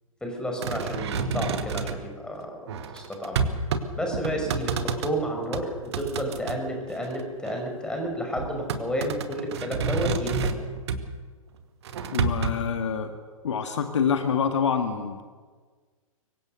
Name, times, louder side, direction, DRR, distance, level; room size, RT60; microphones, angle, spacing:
voice 1, 0.2-2.6 2.9-3.4 4.0-10.6, equal, 5° left, 2 dB, 5.6 m, -31 dB
sound 1, 0.6-2.0 2.7-3.9 4.1-5.1 5.5-6.6 7.0-7.7 8.4-11.1 11.9-12.5, right 5 dB, 50° right, 2.0 m, -29 dB
voice 2, 12.1-13.1 13.4-15.2, left 7 dB, 55° left, 6 dB, 2.0 m, -26 dB
25.5 x 23.5 x 6.6 m, 1.5 s
figure-of-eight pair, 110°, 18 cm